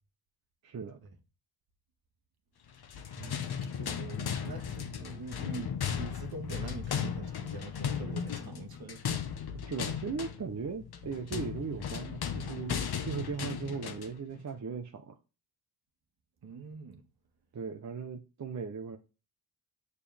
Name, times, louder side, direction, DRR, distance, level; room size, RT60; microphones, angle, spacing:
voice 1, 0.6-1.0 3.2-3.4 9.5-15.2 17.5-19.0, right 5 dB, 40° right, 0.8 m, -38 dB
sound 1, 2.8-14.2, left 7 dB, 60° left, 1.1 m, -36 dB
voice 2, 3.6-9.2 16.4-17.0, right 4 dB, 60° right, 1.5 m, -44 dB
7.4 x 6.7 x 3.5 m
cardioid pair, 85°, 42 cm